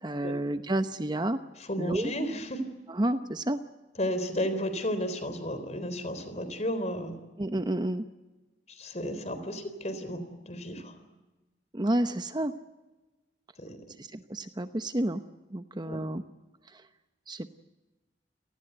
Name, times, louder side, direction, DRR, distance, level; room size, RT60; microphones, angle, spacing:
voice 1, 0.0-1.4 1.8-2.1 2.9-3.6 7.4-8.1 11.7-12.5 14.0-15.2 15.5-16.2 17.3-17.5, right 1 dB, 25° right, 9 dB, 0.9 m, -30 dB
voice 2, 1.6-2.6 4.0-7.2 8.7-11.0 13.6-13.8 15.8-16.0, equal, 40° left, 11 dB, 3.9 m, -33 dB
29.0 x 19.0 x 8.1 m, 1.1 s
head